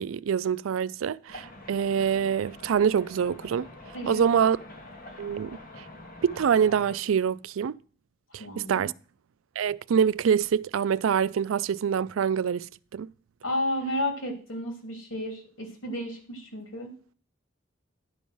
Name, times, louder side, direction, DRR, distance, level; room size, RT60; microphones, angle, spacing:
voice 1, 0.0-3.7 4.1-4.6 5.2-5.6 6.2-7.7 8.3-8.9 9.6-13.1, right 7 dB, 85° right, 0.4 m, -25 dB
sound 1, 1.3-7.0, left 1 dB, 45° left, 2.0 m, -46 dB
voice 2, 8.3-8.8 13.4-16.9, left 1 dB, 85° left, 3.3 m, -32 dB
11.0 x 5.5 x 6.1 m
head